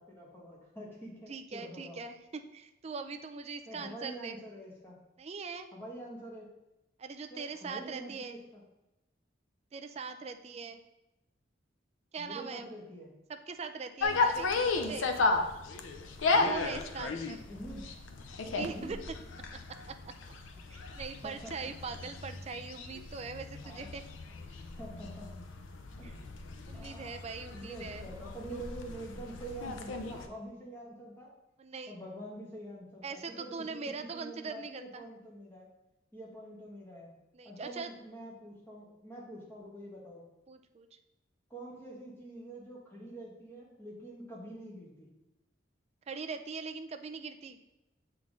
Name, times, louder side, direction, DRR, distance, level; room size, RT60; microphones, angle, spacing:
voice 1, 0.0-2.0 3.7-5.0 5.7-6.5 7.3-8.6 12.2-13.1 17.5-17.9 18.7-19.0 21.2-21.5 23.6-23.9 24.5-25.3 26.0-26.1 26.7-27.2 27.5-31.3 31.9-35.7 36.1-37.1 37.4-40.2 41.5-45.1, right 1 dB, 10° left, -4 dB, 1.5 m, -46 dB
voice 2, 1.3-4.4 5.2-5.7 7.0-8.4 9.7-10.8 12.1-12.7 13.3-15.1 16.3-17.4 18.4-19.0 19.5-20.2 20.7-24.0 26.0-26.1 26.7-28.1 31.6-32.0 33.0-35.1 37.3-37.9 40.5-40.9 46.1-47.6, right 4 dB, 35° right, 7 dB, 0.4 m, -41 dB
sound 1, 14.0-30.3, left 3 dB, 90° left, 0.5 m, -35 dB
7.4 x 3.8 x 3.6 m, 0.94 s
head